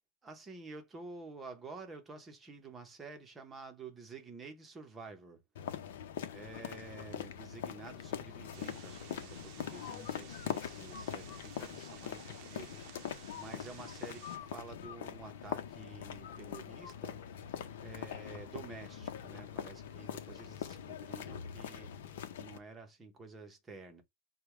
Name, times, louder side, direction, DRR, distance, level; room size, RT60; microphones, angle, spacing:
voice 1, 0.2-5.4 6.3-17.2 17.6-21.9 22.4-24.0, right 3 dB, 10° right, 0.9 m, -50 dB
sound 1, 5.6-22.6, left 9 dB, 65° left, 0.8 m, -43 dB
sound 2, 8.5-14.4, right 10 dB, 40° right, 0.7 m, -55 dB
6.6 x 2.3 x 3.3 m
supercardioid pair, 170°, 0 cm